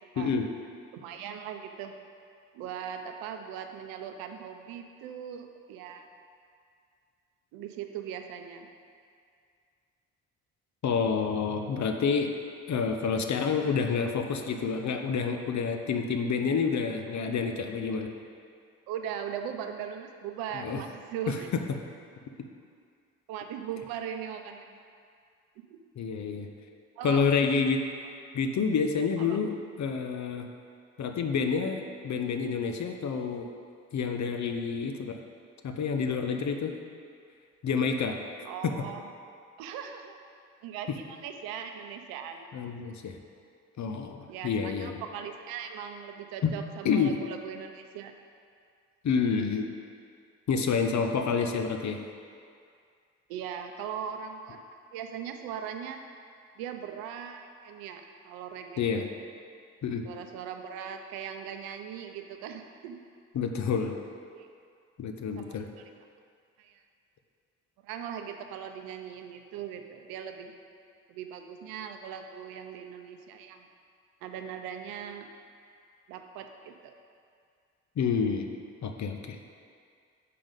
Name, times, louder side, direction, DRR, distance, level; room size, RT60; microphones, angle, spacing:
voice 1, 0.2-0.5 10.8-12.3 12.7-18.1 20.5-20.8 21.3-21.6 26.0-26.5 27.0-27.8 28.3-29.5 29.8-30.5 31.0-33.5 33.9-35.2 35.6-36.7 37.6-38.2 38.6-38.7 42.5-43.2 43.8-45.0 46.4-46.5 46.8-47.1 49.0-49.7 50.5-52.0 58.8-59.0 59.8-60.0 63.3-63.9 65.0-65.7 78.0-78.6 78.8-79.4, left 5 dB, 55° left, 5 dB, 0.8 m, -28 dB
voice 2, 0.9-1.9 2.5-6.1 7.5-8.7 18.9-21.5 23.3-24.8 25.6-25.8 27.0-27.3 29.2-29.4 38.4-39.1 39.6-40.2 40.6-42.5 44.3-48.1 53.3-54.6 54.9-56.0 56.6-59.1 60.0-63.0 64.3-64.5 65.4-65.8 66.6-66.8 67.8-70.5 71.1-73.7 74.2-75.3 76.1-76.9, right 8 dB, 80° right, 6 dB, 0.6 m, -39 dB
6.7 x 5.3 x 5.3 m, 2.3 s
hypercardioid pair, 40°, 35 cm